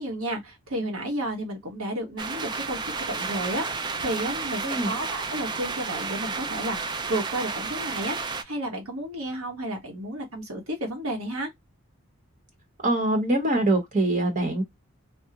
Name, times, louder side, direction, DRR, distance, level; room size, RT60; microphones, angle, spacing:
voice 1, 0.0-11.5, right 1 dB, 85° right, 1.1 m, -32 dB
sound 1, 2.2-8.4, right 4 dB, 20° right, 0.3 m, -32 dB
voice 2, 12.8-14.6, right 1 dB, 40° right, 0.8 m, -23 dB
3.5 x 2.1 x 2.8 m
head